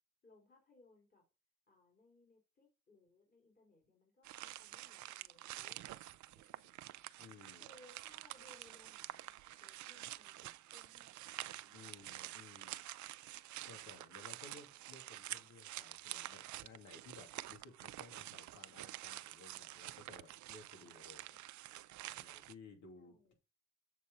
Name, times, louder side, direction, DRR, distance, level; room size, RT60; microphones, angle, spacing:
voice 1, 0.2-1.2 1.7-7.0 7.6-12.1 22.9-23.3, left 2 dB, 30° left, 3.2 m, -67 dB
sound 1, 4.2-22.5, right 15 dB, 70° right, 0.5 m, -49 dB
voice 2, 7.2-7.7 11.7-12.8 13.7-21.4 22.1-23.3, left 4 dB, 70° left, 2.6 m, -58 dB
7.4 x 4.2 x 5.3 m
cardioid pair, 90°, 30 cm